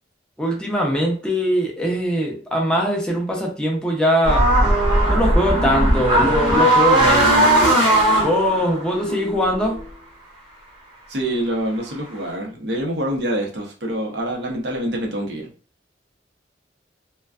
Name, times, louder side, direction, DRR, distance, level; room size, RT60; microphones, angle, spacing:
voice 1, 0.4-4.5 5.1-7.5 8.2-9.8, equal, 5° left, 0.5 m, -21 dB
sound 1, 4.2-9.8, right 1 dB, 25° right, 0.9 m, -17 dB
voice 2, 11.1-15.5, right 1 dB, 70° right, 0.7 m, -26 dB
2.4 x 2.2 x 2.3 m
head